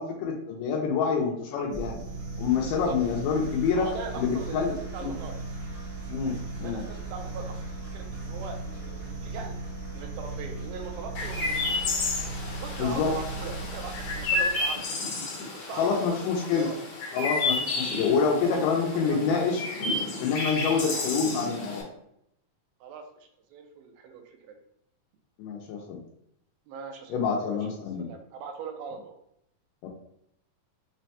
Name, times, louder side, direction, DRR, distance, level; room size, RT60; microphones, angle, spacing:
voice 1, 0.0-2.0 2.4-3.9 4.2-4.7 5.0-5.1 6.1-6.8 12.8-13.1 15.8-16.7 17.1-19.6 20.2-21.9 25.4-26.0 27.1-28.1 29.8-29.9, left 5 dB, 80° left, -1 dB, 2.0 m, -27 dB
sound 1, 1.7-14.7, right 3 dB, 70° right, 0.9 m, -37 dB
voice 2, 3.7-5.3 6.6-7.6 7.9-9.6 10.0-12.0 12.6-14.8 15.5-16.8 18.3-19.5 22.8-24.6 26.7-27.6 28.0-29.1, right 5 dB, 85° right, 3 dB, 2.4 m, -41 dB
Chirp tweet, 11.1-21.8, left 3 dB, 65° left, 2.0 m, -31 dB
6.1 x 2.2 x 2.8 m, 0.75 s
omnidirectional pair, 4.2 m